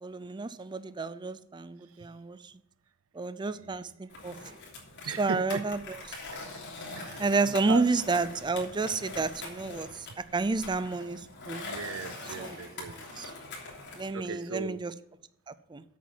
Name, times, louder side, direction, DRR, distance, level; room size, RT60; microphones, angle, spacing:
voice 1, 0.0-2.4 3.2-4.3 5.2-6.0 7.2-9.9 10.3-11.2 11.5-11.6 12.4-12.6 13.2-13.3 14.0-14.9 15.7-15.8, right 3 dB, 20° right, 14 dB, 0.4 m, -30 dB
voice 2, 3.6-3.9 5.1-5.6 7.0-7.8 11.6-12.9 14.1-14.8, right 5 dB, 85° right, 12 dB, 0.6 m, -38 dB
Skateboard, 4.1-14.1, left 2 dB, 60° left, 3.2 m, -43 dB
8.4 x 7.4 x 7.5 m, 0.76 s
head